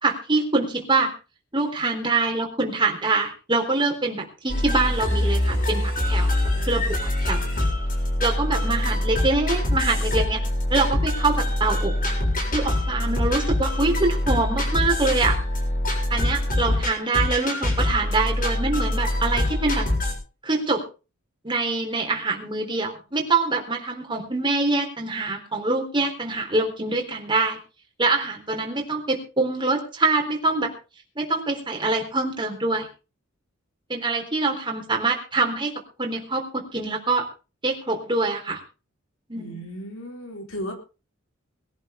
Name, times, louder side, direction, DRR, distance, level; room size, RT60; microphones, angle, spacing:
voice 1, 0.0-1.1 1.5-6.3 6.7-7.7 8.2-10.4 10.7-11.9 12.5-15.4 16.1-19.8 20.4-20.8 21.4-27.6 28.0-30.7 31.2-32.9 33.9-35.7 36.0-37.2 37.6-38.6 39.3-39.7, right 3 dB, 25° right, 2 dB, 3.7 m, -24 dB
sound 1, 4.5-20.1, left 1 dB, 45° left, 7.1 m, -24 dB
voice 2, 39.3-40.7, equal, 65° left, 3 dB, 4.1 m, -35 dB
21.0 x 11.5 x 3.7 m, 0.33 s
head